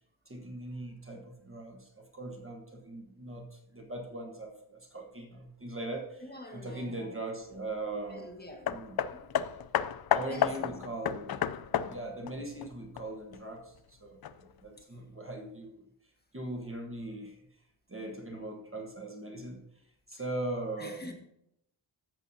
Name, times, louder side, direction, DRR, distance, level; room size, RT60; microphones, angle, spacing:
voice 1, 0.3-6.2 6.5-8.3 8.7-9.0 9.4-9.7 10.1-11.3 11.7-15.9 16.3-17.4 17.9-19.6 20.1-21.0, right 2 dB, 25° right, 2 dB, 1.2 m, -40 dB
voice 2, 6.2-7.2 8.0-9.3 10.2-10.7 14.8-14.9 20.1-20.2 20.8-21.1, left 1 dB, 20° left, 1 dB, 1.7 m, -47 dB
Hammer, 8.7-13.4 14.2-14.3, left 9 dB, 55° left, 0.5 m, -32 dB
13.5 x 7.1 x 2.7 m, 0.80 s
wide cardioid pair, 95°, 46 cm